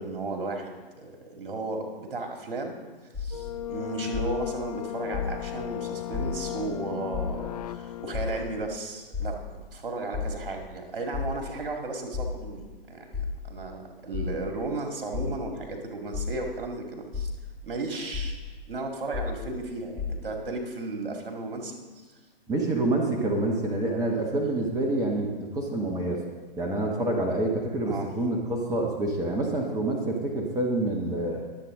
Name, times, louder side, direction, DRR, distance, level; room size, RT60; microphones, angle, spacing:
voice 1, 0.0-2.8 3.2-17.3 17.6-18.4 18.7-21.8 27.9-28.1, right 2 dB, 65° right, 3 dB, 2.2 m, -34 dB
sound 1, 3.1-3.5 4.1-4.5 5.1-5.5 6.1-6.5 7.1-7.5 8.1-8.5 9.1-9.5 10.1-10.5 11.1-11.5 12.1-12.5 13.1-13.5 14.1-14.5 15.1-15.5 16.1-16.5 17.1-17.5 18.1-18.5 19.1-19.5 20.0-20.1, left 7 dB, 5° left, 2.8 m, -33 dB
sound 2, 3.3-8.7, left 12 dB, 40° left, 0.4 m, -36 dB
voice 2, 22.5-26.2 26.6-31.4, right 2 dB, 10° right, -1 dB, 1.3 m, -27 dB
22.5 x 7.8 x 3.7 m, 1.3 s
figure-of-eight pair, 120°, 29 cm